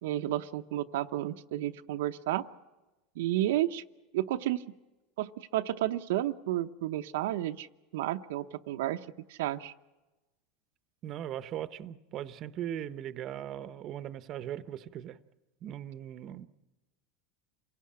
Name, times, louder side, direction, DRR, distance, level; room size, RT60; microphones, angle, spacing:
voice 1, 0.0-2.5 3.2-3.8 4.1-4.6 5.2-7.7 7.9-9.0 9.3-9.7, right 14 dB, 85° right, 0.8 m, -31 dB
voice 2, 11.0-15.2 15.6-16.5, right 11 dB, 40° right, 0.9 m, -39 dB
27.0 x 17.0 x 8.6 m
supercardioid pair, 140°, 0 cm